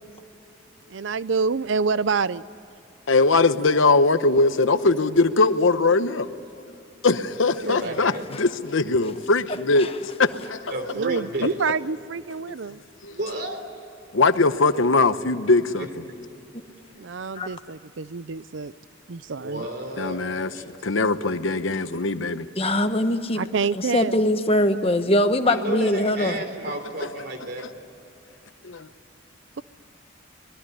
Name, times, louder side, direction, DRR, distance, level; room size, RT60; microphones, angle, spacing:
voice 1, 0.9-2.4 7.6-8.0 10.9-12.8 17.0-18.7 19.1-19.7 23.3-24.2, right 5 dB, 75° right, 16 dB, 0.6 m, -27 dB
voice 2, 3.1-6.3 7.0-8.1 8.4-9.9 10.2-10.7 13.0-13.1 14.1-15.9 20.0-20.5 20.8-22.5 28.6-28.8, left 3 dB, 85° left, 11 dB, 1.0 m, -21 dB
voice 3, 7.6-8.3 10.7-11.6 13.1-13.6 15.8-16.2 19.4-20.2 20.5-20.7 25.4-27.7, right 2 dB, 55° right, 6 dB, 3.7 m, -32 dB
voice 4, 22.6-23.4 23.7-26.4, left 1 dB, 30° left, 8 dB, 1.2 m, -22 dB
25.5 x 21.0 x 9.9 m, 2.7 s
head